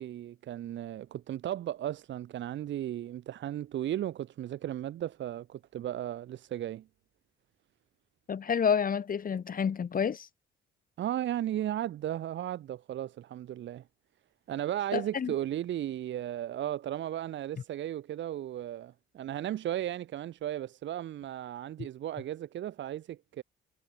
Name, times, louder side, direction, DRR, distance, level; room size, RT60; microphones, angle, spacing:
voice 1, 0.0-6.8 11.0-13.8 14.5-23.4, right 12 dB, 70° right, 1.2 m, -35 dB
voice 2, 8.3-10.3 14.9-15.3, left 7 dB, 45° left, 2.3 m, -29 dB
cardioid pair, 90°, 20 cm